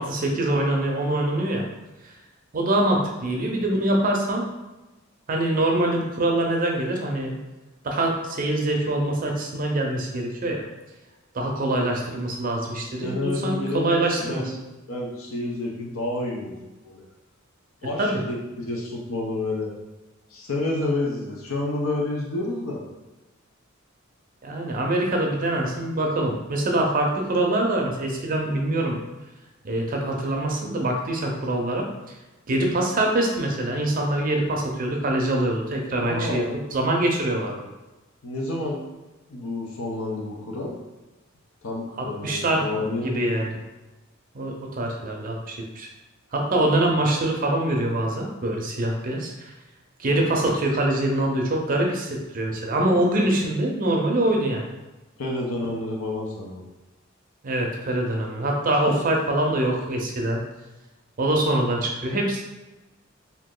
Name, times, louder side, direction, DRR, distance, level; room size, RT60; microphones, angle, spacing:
voice 1, 0.0-1.7 2.5-4.5 5.3-7.4 7.8-10.6 11.3-14.4 18.0-18.2 24.4-29.0 29.6-31.9 32.5-37.6 42.0-43.6 44.3-45.9 46.3-49.5 50.0-54.7 57.4-60.4 61.2-62.4, right 1 dB, 40° right, 1 dB, 0.5 m, -24 dB
voice 2, 13.0-14.5 14.9-16.6 16.8-17.0 17.8-19.7 20.3-22.8 36.0-36.5 38.2-38.8 39.3-40.7 41.6-43.2 52.9-53.1 55.2-56.6, left 2 dB, 75° left, -2 dB, 0.7 m, -29 dB
2.9 x 2.5 x 3.7 m, 1.1 s
head